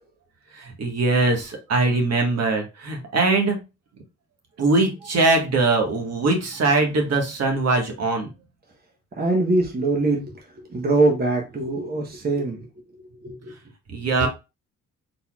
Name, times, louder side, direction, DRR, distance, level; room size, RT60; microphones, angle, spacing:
voice 1, 0.5-3.6 4.6-8.3 13.9-14.3, right 3 dB, 55° right, 1.5 m, -21 dB
voice 2, 9.1-12.7 13.0-13.5 14.1-14.3, right 2 dB, 30° right, 1.1 m, -23 dB
4.1 x 4.1 x 2.3 m
cardioid pair, 90°, 30 cm